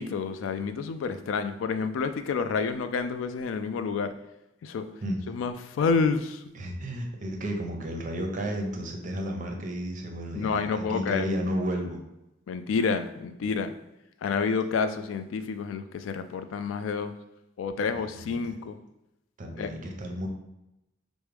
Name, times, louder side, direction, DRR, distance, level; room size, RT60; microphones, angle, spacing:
voice 1, 0.0-4.1 4.6-4.8 5.3-6.4 10.3-11.2 12.5-13.7 14.2-17.1 17.6-18.8 19.6-19.7, left 5 dB, 90° left, 9 dB, 0.3 m, -29 dB
voice 2, 6.5-12.0 17.8-18.4 19.4-20.3, equal, 40° right, 3 dB, 0.6 m, -33 dB
4.6 x 2.1 x 3.3 m, 0.89 s
head